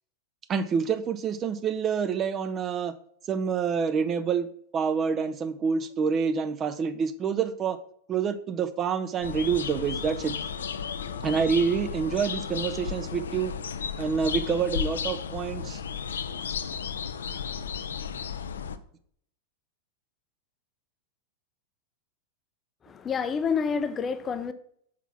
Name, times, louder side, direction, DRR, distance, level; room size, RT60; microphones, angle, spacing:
voice 1, 0.5-2.9 3.3-4.5 4.7-7.8 8.1-10.4 11.2-13.5 14.0-15.8, right 6 dB, 25° right, 0.5 m, -27 dB
sound 1, 9.2-18.8, left 7 dB, 65° left, 0.5 m, -34 dB
voice 2, 22.8-24.5, left 6 dB, 20° left, 0.6 m, -28 dB
6.0 x 4.5 x 5.9 m
figure-of-eight pair, 90°, 0 cm